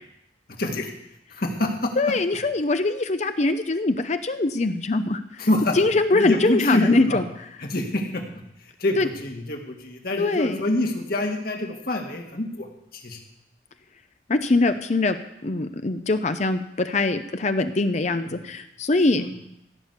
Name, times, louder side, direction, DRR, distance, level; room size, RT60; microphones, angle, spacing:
voice 1, 0.6-0.9 1.4-1.9 5.4-5.8 6.1-7.2 7.6-8.2 8.8-12.7 12.9-13.2 18.1-18.3 19.2-19.3, left 1 dB, 55° left, 2 dB, 2.0 m, -26 dB
voice 2, 2.0-5.2 5.7-7.2 9.0-9.1 10.2-10.6 14.3-15.2 15.4-19.2, left 2 dB, 40° left, 9 dB, 0.7 m, -22 dB
16.0 x 6.2 x 8.2 m, 0.80 s
head